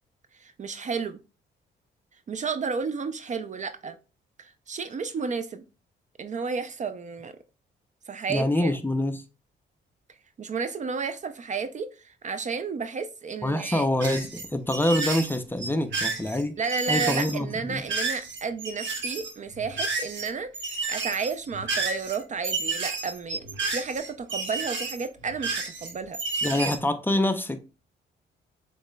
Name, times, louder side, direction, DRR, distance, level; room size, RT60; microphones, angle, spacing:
voice 1, 0.4-1.2 2.3-4.0 4.4-5.6 6.2-7.3 8.1-8.7 10.4-13.9 16.6-26.2 26.5-26.6, right 5 dB, 40° right, 0.4 m, -32 dB
voice 2, 8.3-9.2 13.4-16.6 16.9-17.8 26.4-27.6, left 1 dB, 10° left, 0.5 m, -26 dB
sound 1, 14.0-20.3 20.5-26.8, right 4 dB, 70° right, 1.4 m, -31 dB
7.1 x 3.2 x 2.2 m
cardioid pair, 90°, 20 cm